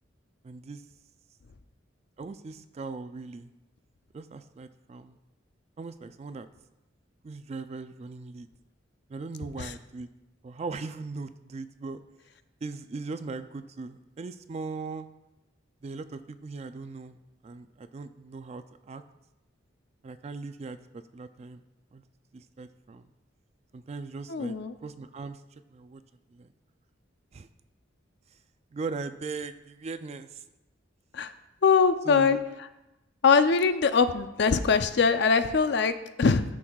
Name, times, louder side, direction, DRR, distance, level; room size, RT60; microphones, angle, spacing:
voice 1, 0.4-0.8 2.2-3.5 4.1-5.2 5.8-6.5 7.2-8.5 9.1-10.1 10.4-12.0 12.6-15.1 15.8-17.2 17.4-19.0 20.0-21.6 21.9-22.0 22.3-23.0 23.7-24.6 24.8-25.4 25.7-26.0 26.3-26.5 27.3-27.5 28.7-30.4 32.1-32.4, right 4 dB, 35° right, 11 dB, 0.3 m, -39 dB
voice 2, 24.3-24.7 31.1-31.3 31.6-32.4 33.2-36.4, left 5 dB, 65° left, 10 dB, 0.5 m, -22 dB
13.5 x 6.2 x 2.3 m, 0.96 s
head